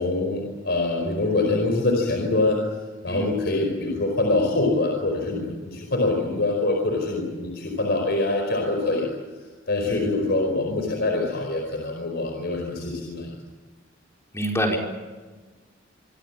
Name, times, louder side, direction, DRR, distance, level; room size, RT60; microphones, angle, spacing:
voice 1, 0.0-2.6 3.0-9.1 9.7-13.3, left 2 dB, 55° left, 2 dB, 4.9 m, -24 dB
voice 2, 9.8-10.2 14.3-14.8, equal, 15° left, 1 dB, 4.8 m, -26 dB
26.0 x 25.5 x 7.5 m, 1.3 s
head